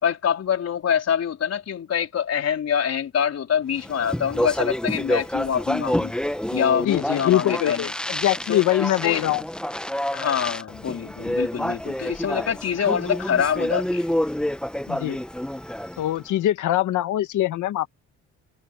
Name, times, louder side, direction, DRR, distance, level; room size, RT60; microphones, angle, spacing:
voice 1, 0.0-6.1 6.5-7.9 8.5-9.2 10.1-14.0, left 8 dB, 55° left, 4.4 m, -25 dB
Speech, 3.8-16.2, left 1 dB, 5° left, 1.0 m, -28 dB
voice 2, 6.8-9.4 14.9-15.2 16.0-17.9, left 14 dB, 80° left, 1.4 m, -23 dB
cardioid pair, 90°, 30 cm